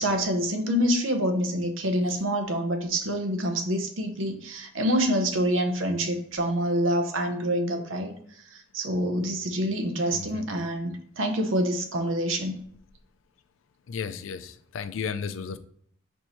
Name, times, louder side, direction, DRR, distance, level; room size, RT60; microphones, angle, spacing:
voice 1, 0.0-8.1 8.5-12.5, equal, 85° right, 6 dB, 0.7 m, -26 dB
voice 2, 10.1-10.5 13.9-14.4 14.7-15.6, left 6 dB, 85° left, 12 dB, 0.4 m, -33 dB
4.5 x 2.7 x 4.2 m, 0.65 s
head